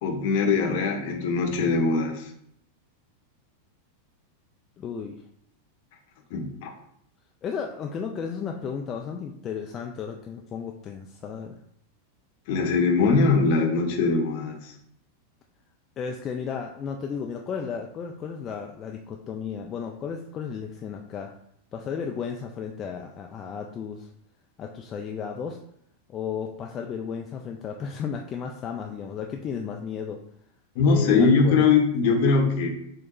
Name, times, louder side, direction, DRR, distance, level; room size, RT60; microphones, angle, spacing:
voice 1, 0.0-2.3 6.3-6.7 12.5-14.7 30.8-32.7, left 4 dB, 50° left, 3 dB, 0.8 m, -21 dB
voice 2, 4.8-5.2 7.4-11.6 16.0-21.3 21.7-24.1 24.6-25.6 26.1-30.2 30.9-31.7, left 6 dB, 30° left, 2 dB, 0.3 m, -34 dB
6.2 x 2.2 x 2.9 m, 0.73 s
figure-of-eight pair, 90°, 0 cm